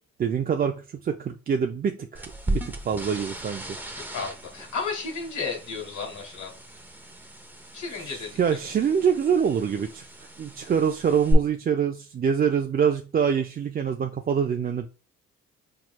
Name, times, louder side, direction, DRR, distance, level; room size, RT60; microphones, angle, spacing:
voice 1, 0.2-3.6 8.0-10.0 10.4-14.9, right 7 dB, 30° right, 0.4 m, -25 dB
sound 1, 2.2-11.3, right 1 dB, 5° right, 0.7 m, -37 dB
voice 2, 4.1-6.5 7.7-8.3, left 4 dB, 75° left, 2.0 m, -33 dB
4.5 x 4.2 x 2.2 m
cardioid pair, 90°, 30 cm